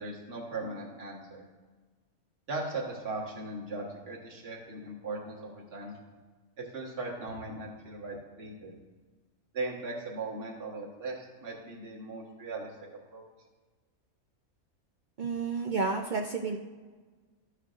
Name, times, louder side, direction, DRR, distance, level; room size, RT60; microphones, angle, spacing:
voice 1, 0.0-1.4 2.5-6.0 6.6-8.7 9.5-12.7 13.1-13.2, right 2 dB, 45° right, -2 dB, 1.6 m, -38 dB
voice 2, 15.2-16.6, right 4 dB, 75° right, 3 dB, 0.4 m, -31 dB
13.0 x 6.6 x 2.5 m, 1.4 s
omnidirectional pair, 1.5 m